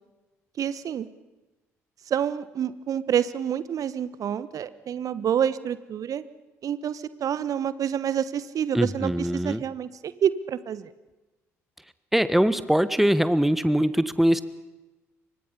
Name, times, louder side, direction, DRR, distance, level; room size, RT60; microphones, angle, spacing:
voice 1, 0.6-1.1 2.1-6.2 6.6-10.9, right 9 dB, 45° right, 16 dB, 1.2 m, -28 dB
voice 2, 8.7-9.6 12.1-14.4, equal, 5° right, 14 dB, 1.4 m, -22 dB
29.5 x 24.5 x 5.6 m, 1.1 s
figure-of-eight pair, 50°, 8 cm